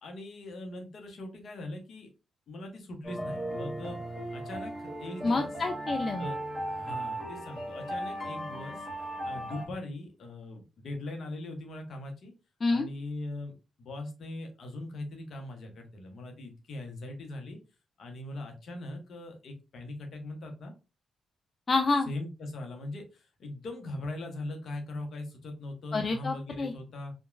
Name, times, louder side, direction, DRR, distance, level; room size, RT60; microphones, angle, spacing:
voice 1, 0.0-2.1 2.5-4.0 4.3-5.5 6.1-6.4 6.7-8.9 9.2-12.3 12.7-17.6 18.0-20.7 22.1-27.1, left 2 dB, 65° left, 4 dB, 0.7 m, -40 dB
sound 1, 3.0-9.7, right 1 dB, 15° left, 1.6 m, -37 dB
voice 2, 5.2-6.3 12.6-12.9 21.7-22.1 25.9-26.7, left 3 dB, 45° left, 4 dB, 0.3 m, -28 dB
2.9 x 2.2 x 2.4 m, 0.30 s
hypercardioid pair, 45°, 0 cm